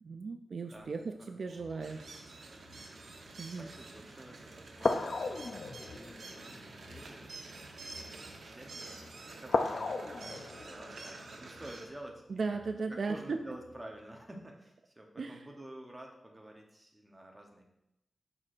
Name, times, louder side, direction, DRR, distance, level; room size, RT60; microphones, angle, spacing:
voice 1, 0.0-2.0 3.4-3.7 12.3-13.4 15.2-15.4, right 4 dB, 55° right, 6 dB, 0.3 m, -36 dB
sound 1, 0.8-2.0 2.6-2.9 3.7-3.8 4.8-8.4 8.9-9.1 9.4-12.9 13.6-13.8, left 3 dB, 55° left, 0.4 m, -37 dB
voice 2, 1.7-2.1 3.1-12.2 12.9-17.6, right 1 dB, 15° right, 0 dB, 0.9 m, -51 dB
sound 2, 1.8-11.9, right 3 dB, 85° right, 0.9 m, -48 dB
11.0 x 4.3 x 2.5 m, 0.86 s
wide cardioid pair, 170°, 0 cm